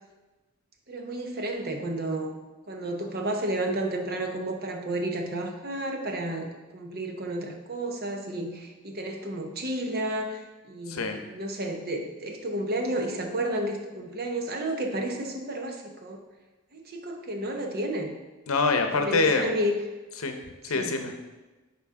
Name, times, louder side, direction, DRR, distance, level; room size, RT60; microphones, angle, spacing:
voice 1, 0.9-2.4 2.7-16.2 16.7-18.1 18.9-19.7 20.7-21.0, right 1 dB, 45° right, 3 dB, 0.9 m, -31 dB
voice 2, 10.9-11.2 18.5-19.5 20.2-20.4 20.6-21.2, left 3 dB, 70° left, 6 dB, 0.8 m, -25 dB
10.0 x 4.2 x 3.7 m, 1.2 s
head